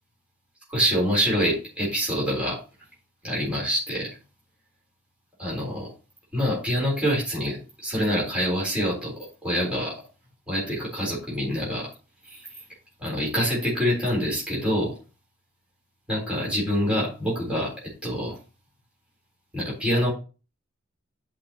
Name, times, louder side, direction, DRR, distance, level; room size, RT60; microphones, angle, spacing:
voice 1, 0.7-2.6 3.2-4.2 5.4-5.9 6.3-10.0 10.5-11.9 12.3-12.4 13.0-14.9 16.1-17.7 18.0-18.4 19.5-20.1, equal, 5° right, -6 dB, 3.9 m, -26 dB
10.5 x 5.4 x 3.0 m, 0.33 s
head